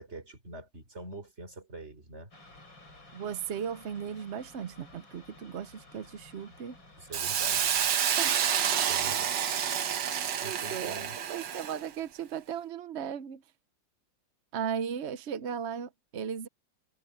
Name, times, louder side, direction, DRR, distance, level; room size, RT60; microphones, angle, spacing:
voice 1, 0.0-2.3 7.0-8.1 8.9-9.4 10.0-11.2, right 2 dB, 35° right, 4.4 m, -45 dB
sound 1, 2.3-7.9, left 2 dB, 85° left, 9.0 m, -54 dB
voice 2, 3.1-6.8 8.2-8.4 10.4-13.4 14.5-16.5, right 8 dB, 55° right, 0.7 m, -36 dB
Hiss, 7.1-11.8, right 8 dB, 75° right, 1.8 m, -29 dB
omnidirectional pair, 2.0 m